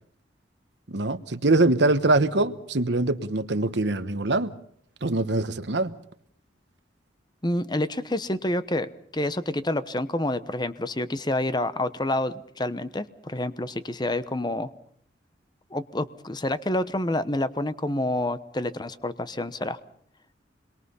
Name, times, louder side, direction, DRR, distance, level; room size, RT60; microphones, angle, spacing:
voice 1, 0.9-4.5 5.0-5.9, right 2 dB, 65° right, 1.1 m, -23 dB
voice 2, 7.4-14.7 15.7-19.8, left 1 dB, 20° left, 0.9 m, -28 dB
27.0 x 22.5 x 5.6 m
head